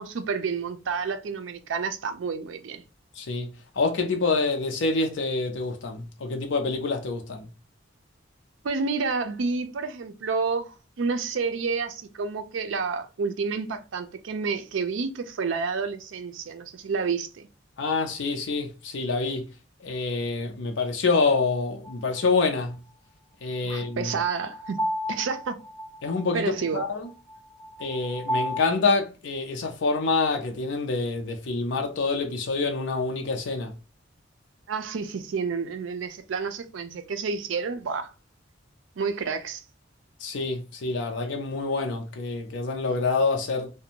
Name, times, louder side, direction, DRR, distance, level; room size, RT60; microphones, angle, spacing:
voice 1, 0.0-2.8 8.6-17.5 23.6-24.8 25.1-25.6 26.3-26.8 34.7-38.1 39.0-39.6, right 5 dB, 70° right, 0.4 m, -29 dB
voice 2, 3.2-3.5 3.8-7.5 17.8-19.5 19.8-22.8 23.4-24.1 26.0-27.1 27.8-33.7 40.2-43.7, left 3 dB, 65° left, 0.5 m, -26 dB
sound 1, 21.8-21.9 23.8-28.6, equal, 25° right, 0.9 m, -33 dB
2.5 x 2.2 x 2.8 m
head